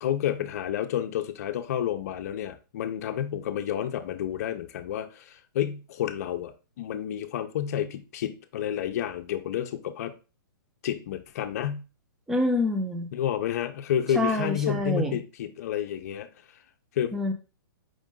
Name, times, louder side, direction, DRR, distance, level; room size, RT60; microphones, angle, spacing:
voice 1, 0.0-10.1 10.8-11.8 13.1-16.3 16.9-17.1, left 10 dB, 45° left, 8 dB, 0.6 m, -30 dB
voice 2, 12.3-13.1 14.1-15.1 17.1-17.3, left 1 dB, 5° right, 6 dB, 0.3 m, -26 dB
5.0 x 2.5 x 3.7 m, 0.32 s
hypercardioid pair, 160°, 12 cm